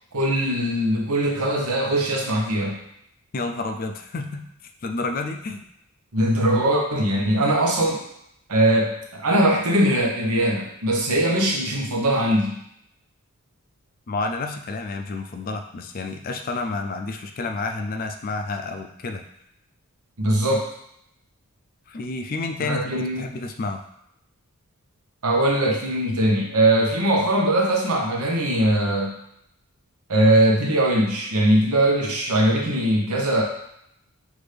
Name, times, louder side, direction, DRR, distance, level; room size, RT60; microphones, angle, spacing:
voice 1, 0.1-2.8 6.1-8.0 8.5-12.6 20.2-20.7 22.6-23.2 25.2-29.1 30.1-33.4, right 1 dB, 85° right, 0 dB, 1.0 m, -21 dB
voice 2, 3.3-4.4 4.8-5.6 14.1-19.2 21.9-23.8, left 3 dB, 40° left, 5 dB, 0.4 m, -30 dB
6.0 x 2.6 x 3.3 m, 0.75 s
head